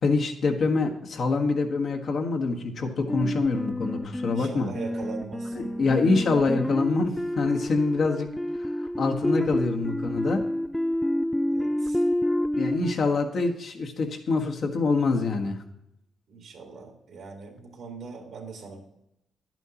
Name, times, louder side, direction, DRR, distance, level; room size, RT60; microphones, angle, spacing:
voice 1, 0.0-4.7 5.6-8.3 8.6-8.7 9.0-10.4 12.5-15.6, left 3 dB, 60° left, 3 dB, 1.4 m, -25 dB
sound 1, 3.1-12.9, left 1 dB, 5° left, 0.3 m, -29 dB
voice 2, 4.3-5.7 11.5-12.0 16.3-18.8, right 5 dB, 75° right, 2 dB, 2.2 m, -41 dB
11.0 x 8.9 x 2.9 m, 0.83 s
supercardioid pair, 65°, 0 cm